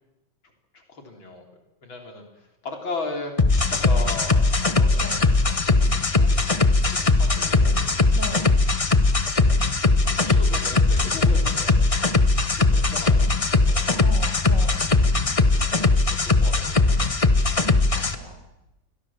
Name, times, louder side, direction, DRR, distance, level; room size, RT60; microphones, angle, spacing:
voice 1, 0.7-1.5 1.8-3.3 3.7-8.0 10.0-11.9 12.5-13.9 15.4-16.8 17.6-18.2, left 3 dB, 80° left, 3 dB, 4.5 m, -38 dB
sound 1, 3.4-18.1, left 3 dB, 25° left, 0.9 m, -20 dB
voice 2, 5.0-5.3 8.1-8.5 13.9-14.9 17.7-18.4, left 1 dB, 40° left, 4 dB, 5.4 m, -38 dB
28.0 x 22.5 x 7.4 m, 0.97 s
omnidirectional pair, 2.1 m